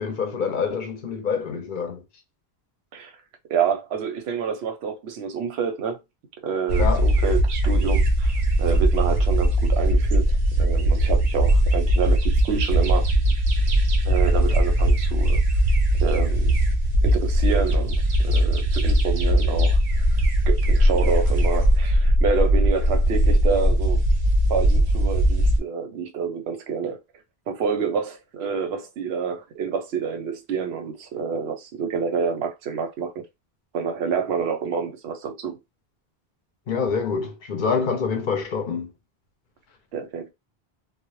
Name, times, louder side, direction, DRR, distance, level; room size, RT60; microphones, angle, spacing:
voice 1, 0.0-2.0 6.8-7.1 36.7-38.9, left 5 dB, 60° left, 0.6 m, -26 dB
voice 2, 3.5-6.0 6.4-8.3 8.6-13.1 14.0-15.4 16.0-16.5 17.0-18.0 18.2-19.8 20.1-20.2 20.5-24.0 24.5-27.0 27.5-33.1 33.7-35.6 39.9-40.3, right 6 dB, 90° right, 0.9 m, -28 dB
sound 1, 6.7-25.6, right 1 dB, 50° right, 0.6 m, -20 dB
2.0 x 2.0 x 2.9 m
omnidirectional pair, 1.1 m